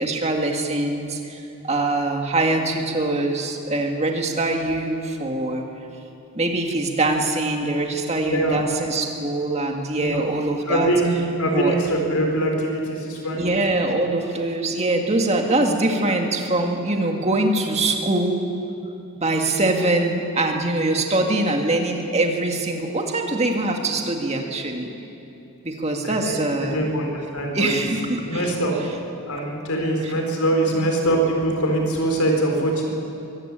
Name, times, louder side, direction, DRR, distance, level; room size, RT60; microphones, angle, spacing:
voice 1, 0.0-5.6 6.3-10.9 11.5-11.7 13.3-18.4 19.2-24.9 25.6-26.9 27.5-28.5 30.0-30.1 30.7-30.9, right 2 dB, 30° right, 2 dB, 2.0 m, -23 dB
voice 2, 8.2-8.6 10.0-10.2 10.7-13.4 26.0-27.8 28.3-28.7 29.3-32.9, right 1 dB, 85° left, 2 dB, 4.4 m, -23 dB
23.5 x 14.5 x 8.8 m, 2.8 s
head